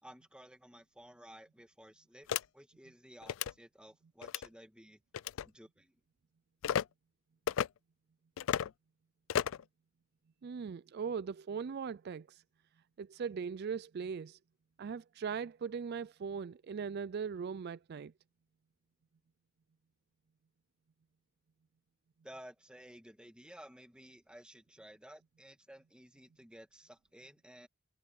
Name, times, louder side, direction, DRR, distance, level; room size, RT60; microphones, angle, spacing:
voice 1, 0.0-2.3 2.5-5.0 5.4-6.0 22.2-27.7, right 1 dB, 5° right, 2.0 m, -55 dB
sound 1, 2.3-2.4 3.2-3.5 4.2-4.5 5.1-5.5 6.6-6.8 7.5-7.7 8.4-8.7 9.3-9.6, left 9 dB, 80° left, 0.4 m, -33 dB
voice 2, 10.4-12.4 13.0-14.4 14.8-18.1, right 6 dB, 55° right, 0.4 m, -39 dB
head